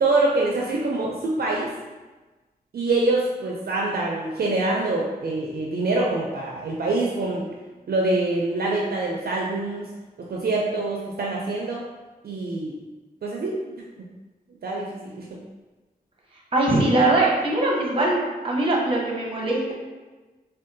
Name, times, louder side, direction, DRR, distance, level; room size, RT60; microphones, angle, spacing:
voice 1, 0.0-1.7 2.7-7.5 7.9-9.9 10.3-11.8 12.2-12.7 13.2-13.6 14.6-15.2, right 2 dB, 65° right, -3 dB, 0.4 m, -25 dB
voice 2, 16.5-18.1 18.4-19.7, right 2 dB, 35° right, -2 dB, 0.8 m, -21 dB
3.5 x 2.3 x 2.6 m, 1.2 s
wide cardioid pair, 70°, 17 cm